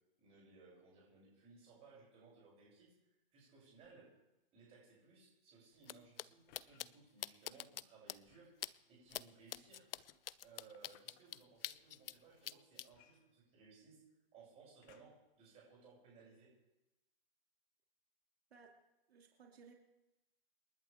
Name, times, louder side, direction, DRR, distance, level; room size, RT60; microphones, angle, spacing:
voice 1, 0.2-2.9 3.3-4.1 4.5-8.5 8.9-9.9 10.4-14.0 14.3-16.5, right 4 dB, 20° right, -5 dB, 7.7 m, -62 dB
sound 1, 3.8-4.2 6.5-6.8 8.2-8.6 9.9-11.2 12.9-13.9 14.8-15.3 16.0-16.1, left 10 dB, 20° left, 0.8 m, -69 dB
sound 2, 5.8-5.9 6.2-6.3 6.5-6.9 7.2-7.8 8.1-8.2 8.6-8.7 9.1-9.2 9.5-12.2 12.4-12.9, left 11 dB, 70° left, 0.6 m, -44 dB
voice 2, 19.1-19.7, right 5 dB, 80° right, 1 dB, 2.7 m, -60 dB
28.5 x 11.0 x 3.6 m, 0.96 s
hypercardioid pair, 160°, 30 cm